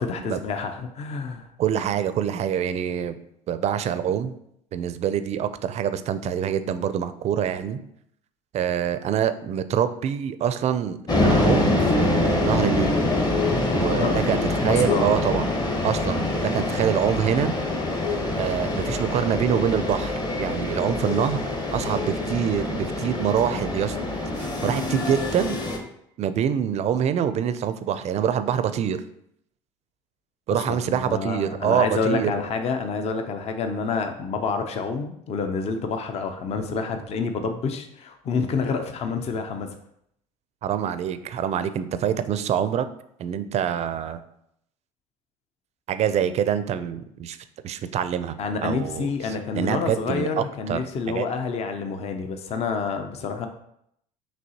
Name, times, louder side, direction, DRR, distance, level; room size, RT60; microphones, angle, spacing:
voice 1, 0.0-1.5 13.9-14.2 14.7-15.2 30.7-39.7 48.4-53.5, left 4 dB, 40° left, 6 dB, 0.5 m, -28 dB
voice 2, 1.6-3.2 3.5-4.3 4.7-7.8 8.5-13.0 13.7-15.5 15.8-17.5 18.4-24.0 24.4-25.6 26.2-29.0 30.5-32.3 40.6-42.9 43.2-44.2 45.9-47.4 47.6-49.1 49.5-50.8 51.1-51.3, right 9 dB, 45° right, 12 dB, 0.4 m, -25 dB
sound 1, 11.1-25.8, left 2 dB, 25° left, 0.9 m, -25 dB
5.2 x 3.1 x 2.8 m, 0.74 s
hypercardioid pair, 75°, 16 cm